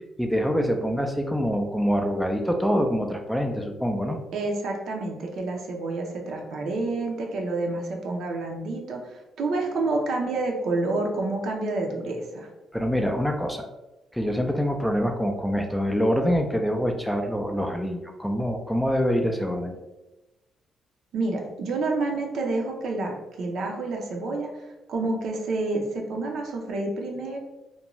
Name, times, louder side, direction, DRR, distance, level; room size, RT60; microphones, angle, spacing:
voice 1, 0.2-4.2 12.7-13.7 14.1-19.8, equal, ahead, 4 dB, 0.3 m, -25 dB
voice 2, 4.3-12.5 21.1-27.4, right 2 dB, 70° right, 1 dB, 0.5 m, -29 dB
2.5 x 2.2 x 3.0 m, 1.0 s
cardioid pair, 90°, 0 cm